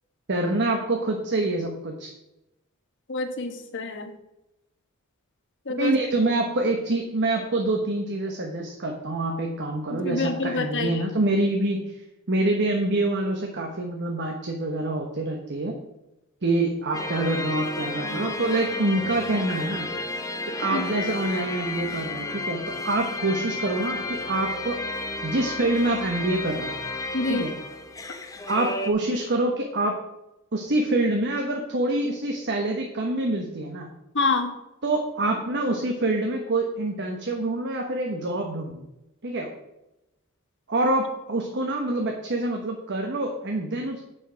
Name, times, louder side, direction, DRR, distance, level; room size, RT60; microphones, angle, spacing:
voice 1, 0.3-2.1 5.7-11.8 12.3-15.7 16.4-19.9 20.6-24.8 25.2-26.7 27.3-27.5 28.5-29.9 30.5-33.9 34.8-38.8 39.2-39.5 40.7-44.0, right 2 dB, 55° right, 2 dB, 1.1 m, -26 dB
voice 2, 3.1-4.1 5.7-5.9 9.9-11.0 20.7-20.8 27.1-27.5 34.1-34.5, left 3 dB, 55° left, 6 dB, 1.2 m, -27 dB
sound 1, 16.9-28.9, left 2 dB, 15° left, 0.8 m, -32 dB
9.0 x 6.2 x 5.0 m, 0.92 s
head